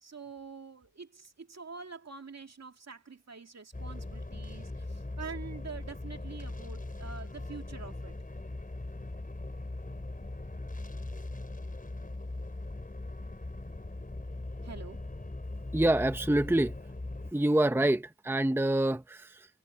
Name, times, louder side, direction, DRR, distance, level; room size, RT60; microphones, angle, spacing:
voice 1, 0.0-8.2 14.6-15.0 17.7-17.9, right 5 dB, 55° right, 2.2 m, -46 dB
sound 1, 3.7-17.3, left 2 dB, 25° left, 4.9 m, -40 dB
voice 2, 15.7-16.7 17.3-19.5, right 1 dB, 5° right, 0.8 m, -26 dB
wide cardioid pair, 95°, 31 cm